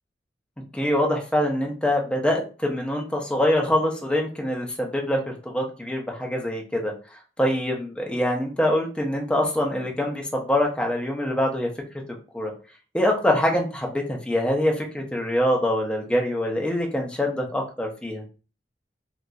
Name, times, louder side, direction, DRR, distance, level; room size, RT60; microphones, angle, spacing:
voice 1, 0.7-6.9 7.4-11.7 12.3-12.5 12.9-18.2, left 1 dB, 5° left, 0 dB, 0.7 m, -24 dB
3.9 x 2.6 x 2.3 m, 0.35 s
head